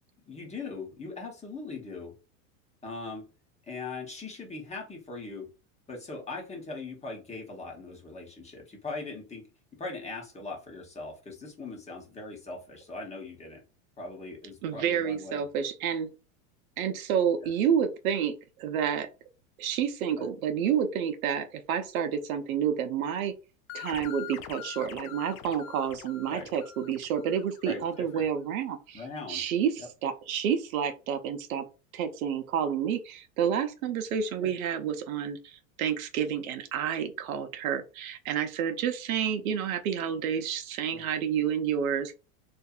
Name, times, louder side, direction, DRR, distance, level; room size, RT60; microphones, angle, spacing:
voice 1, 0.3-2.1 2.8-3.3 3.7-5.5 5.9-9.5 9.7-13.6 14.0-15.4 20.2-20.3 26.3-26.5 27.6-28.3 28.9-29.4 29.8-29.9 34.4-34.5 40.9-41.1, left 3 dB, 15° left, 1 dB, 0.9 m, -40 dB
voice 2, 14.6-16.1 16.8-19.1 19.6-23.3 23.7-31.6 31.9-42.2, right 8 dB, 80° right, 7 dB, 0.7 m, -29 dB
sound 1, 23.7-28.0, left 12 dB, 70° left, 0.5 m, -44 dB
2.6 x 2.4 x 2.3 m, 0.31 s
supercardioid pair, 115°, 42 cm